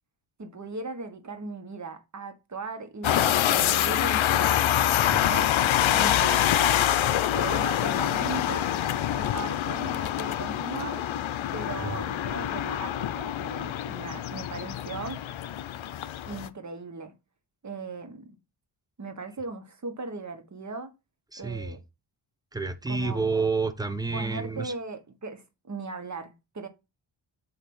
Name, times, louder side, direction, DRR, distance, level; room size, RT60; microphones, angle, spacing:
voice 1, 0.4-6.8 7.3-8.7 9.1-11.0 11.5-15.2 16.3-17.1 17.6-18.3 19.0-20.9 21.4-21.8 22.9-23.2 24.1-26.7, right 3 dB, 35° right, 1.3 m, -38 dB
sound 1, 3.0-16.5, left 11 dB, 80° left, 0.7 m, -26 dB
voice 2, 21.3-21.8 22.5-24.7, right 4 dB, 10° right, 0.8 m, -29 dB
7.6 x 2.9 x 5.5 m
cardioid pair, 90°, 47 cm